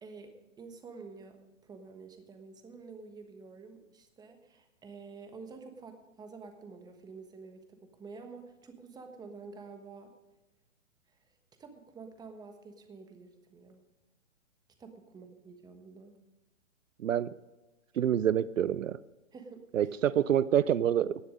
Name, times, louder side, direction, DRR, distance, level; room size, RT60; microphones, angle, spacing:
voice 1, 0.0-10.1 11.1-11.2 11.6-13.8 14.8-16.1 19.3-19.6, right 4 dB, 10° right, 6 dB, 1.3 m, -49 dB
voice 2, 17.0-17.3 18.0-19.0 19.7-21.2, right 10 dB, 80° right, 18 dB, 0.6 m, -27 dB
18.5 x 6.8 x 5.2 m, 1.0 s
hypercardioid pair, 130°, 39 cm